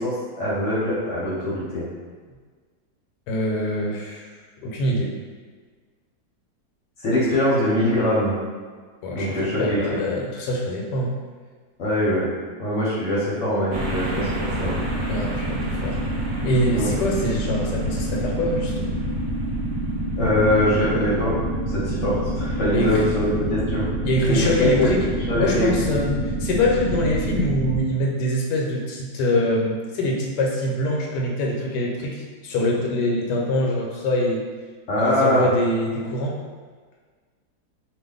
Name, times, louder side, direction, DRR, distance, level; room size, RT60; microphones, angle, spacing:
voice 1, 0.0-1.8 7.0-8.3 9.1-10.0 11.8-12.3 12.6-14.8 16.7-16.9 20.2-21.3 21.7-23.9 24.3-24.9 25.3-25.9 34.9-35.5, left 1 dB, 55° left, -8 dB, 1.0 m, -22 dB
voice 2, 3.3-4.3 4.6-5.1 9.0-11.1 15.1-16.0 16.4-18.9 22.7-23.0 24.0-25.0 25.4-34.4 35.0-36.4, left 1 dB, 85° left, -1 dB, 1.2 m, -24 dB
sound 1, 13.7-27.8, right 1 dB, 65° right, 0.9 m, -27 dB
2.6 x 2.5 x 3.7 m, 1.5 s
omnidirectional pair, 1.8 m